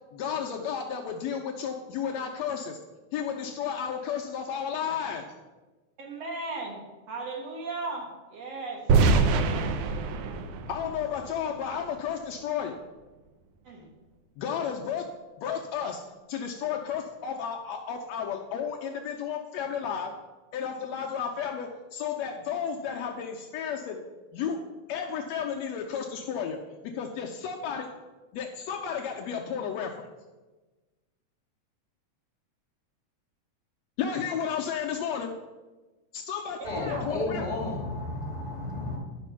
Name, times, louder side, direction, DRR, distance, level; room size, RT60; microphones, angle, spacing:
voice 1, 0.1-2.8 3.1-5.3 10.7-12.8 14.4-15.0 15.4-16.0 16.3-20.2 20.5-24.0 24.3-24.6 24.9-27.9 28.3-30.1 34.0-35.3 36.1-37.5, left 7 dB, 75° left, 2 dB, 1.7 m, -32 dB
voice 2, 6.0-6.8 7.1-8.9 13.7-13.9 36.6-37.1, right 3 dB, 60° right, 0 dB, 2.3 m, -36 dB
sound 1, 8.9-11.9, right 4 dB, 75° right, 1.4 m, -25 dB
voice 3, 36.6-39.0, left 2 dB, 15° left, -4 dB, 1.9 m, -32 dB
11.0 x 5.3 x 5.6 m, 1.2 s
omnidirectional pair, 3.4 m